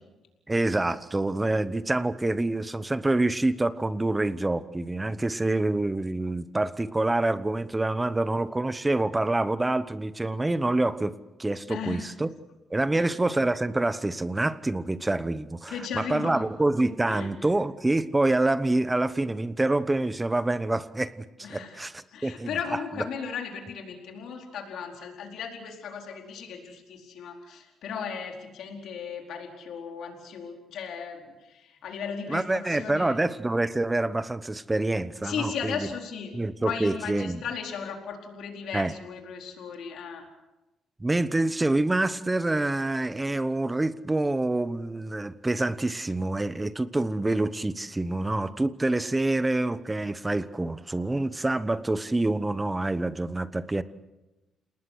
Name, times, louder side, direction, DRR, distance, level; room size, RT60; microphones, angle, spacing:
voice 1, 0.5-11.1 11.4-12.3 12.7-22.5 32.3-35.9 36.3-37.4 38.7-38.9 41.0-53.8, right 2 dB, 15° right, 14 dB, 1.0 m, -26 dB
voice 2, 11.7-12.1 12.9-13.1 15.7-16.5 17.1-17.3 21.4-33.2 35.2-36.3 36.6-40.2, left 6 dB, 75° left, 1 dB, 4.4 m, -36 dB
29.0 x 19.5 x 6.4 m, 1.0 s
cardioid pair, 90°, 0 cm